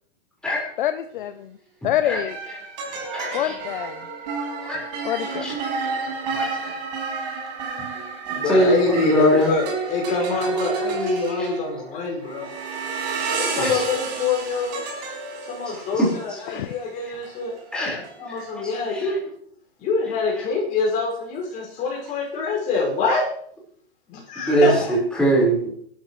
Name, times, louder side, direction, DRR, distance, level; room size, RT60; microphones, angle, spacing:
voice 1, 0.8-1.6 1.8-2.3 3.3-4.0 5.0-5.5 16.5-16.7, left 12 dB, 50° left, 9 dB, 0.8 m, -26 dB
sound 1, 1.1-1.4 2.3-19.0, right 4 dB, 40° right, 5.6 m, -31 dB
voice 2, 2.0-2.6 3.1-3.6 4.7-4.8 5.1-5.5 6.3-6.7 8.4-9.5 10.2-11.5 13.3-13.9 15.6-16.4 17.7-18.0 18.3-19.2 20.0-20.4 24.4-25.6, right 1 dB, 5° left, -6 dB, 5.1 m, -24 dB
voice 3, 8.3-12.5 13.3-14.8 15.4-17.5 18.2-19.2 19.8-23.3 24.1-24.9, left 4 dB, 25° left, -2 dB, 6.2 m, -25 dB
27.0 x 13.0 x 3.3 m, 0.63 s
supercardioid pair, 170°, 31 cm